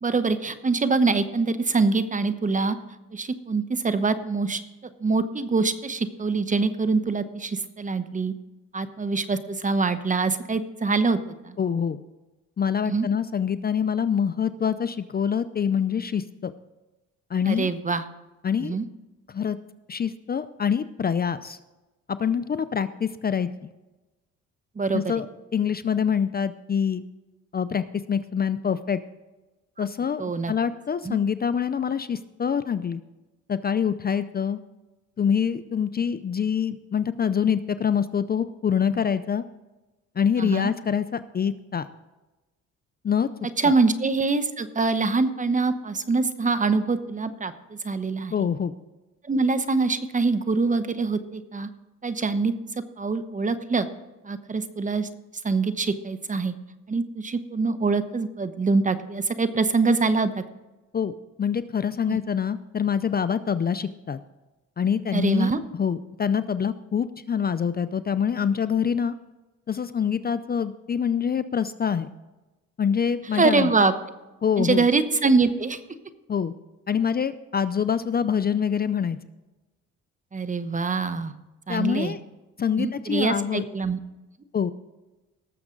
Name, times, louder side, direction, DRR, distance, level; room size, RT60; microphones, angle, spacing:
voice 1, 0.0-2.8 3.1-4.6 5.0-8.3 8.7-11.2 11.4-11.6 12.9-13.1 17.5-18.0 18.6-18.9 24.8-25.0 30.2-30.5 31.0-31.2 40.4-40.7 43.6-48.3 49.2-51.7 52.0-52.5 53.0-53.9 54.2-55.1 55.4-56.5 56.9-60.4 62.1-62.2 65.1-65.6 73.3-73.9 74.6-75.8 80.3-81.3 81.7-82.1 82.8-84.0, right 4 dB, 25° right, 11 dB, 1.0 m, -24 dB
voice 2, 11.6-12.0 12.6-16.5 17.3-17.7 18.4-18.8 19.3-19.6 19.9-21.6 22.1-23.7 24.9-27.0 27.5-29.0 29.8-33.0 33.5-34.6 35.2-39.4 40.2-41.9 43.0-43.3 43.6-43.7 48.3-48.7 60.9-61.1 61.4-64.2 64.8-69.1 69.7-72.1 72.8-73.7 74.4-74.9 76.3-76.5 76.9-79.2 81.7-82.2 82.6-83.6 84.5-84.7, left 7 dB, 30° left, 13 dB, 0.5 m, -25 dB
18.5 x 7.2 x 3.9 m, 1.1 s
cardioid pair, 90°, 30 cm